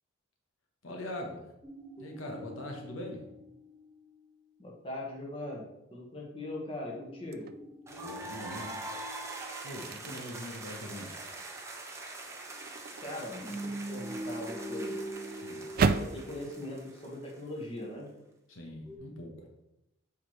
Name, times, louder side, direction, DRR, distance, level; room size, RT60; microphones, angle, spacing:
voice 1, 0.8-1.5 2.0-3.2 7.9-8.7 9.6-11.2 15.3-15.7 18.5-19.5, left 1 dB, 80° left, 1 dB, 1.1 m, -42 dB
sound 1, 1.6-4.3 6.9-10.7 13.4-17.1 18.8-19.0, right 1 dB, 5° left, 1.3 m, -44 dB
voice 2, 4.6-5.6 5.9-7.5 13.0-14.9 16.0-18.1, left 1 dB, 25° left, -3 dB, 1.5 m, -40 dB
sound 2, 7.3-7.6 8.2-16.2, right 4 dB, 45° right, 0.3 m, -37 dB
sound 3, 7.9-17.6, right 2 dB, 15° right, 0.8 m, -44 dB
8.1 x 4.8 x 3.2 m, 0.88 s
head